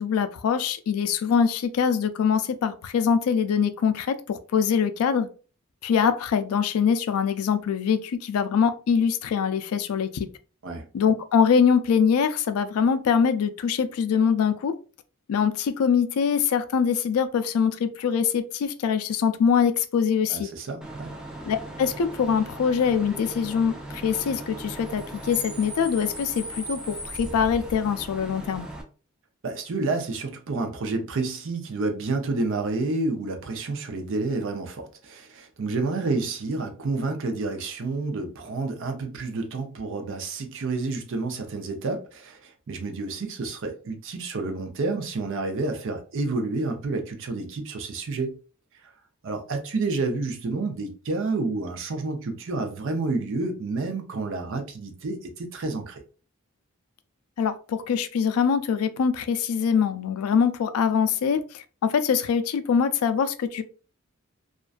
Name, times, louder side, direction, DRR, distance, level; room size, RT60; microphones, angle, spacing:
voice 1, 0.0-5.3 5.8-10.3 10.9-14.7 15.3-20.5 21.5-28.7 57.4-63.6, left 6 dB, 90° left, 0.3 m, -23 dB
voice 2, 20.3-21.1 29.4-48.4 48.8-48.9 49.2-56.0, right 3 dB, 65° right, 0.6 m, -29 dB
Bus / Idling / Screech, 20.8-28.8, right 1 dB, 5° right, 0.4 m, -38 dB
2.4 x 2.2 x 2.4 m
head